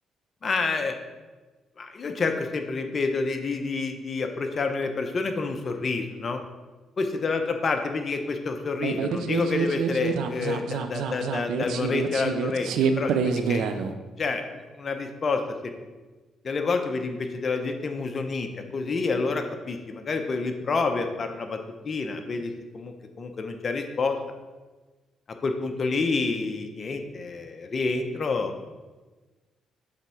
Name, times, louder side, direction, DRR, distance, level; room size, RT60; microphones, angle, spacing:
voice 1, 0.4-0.9 1.8-6.4 7.0-13.6 14.2-15.4 16.4-21.6 21.8-24.2 25.4-28.5, left 4 dB, 45° left, 6 dB, 0.7 m, -28 dB
sound 1, 8.8-13.9, right 6 dB, 80° right, 0.4 m, -27 dB
7.5 x 3.5 x 4.4 m, 1.2 s
cardioid pair, 90°, 0 cm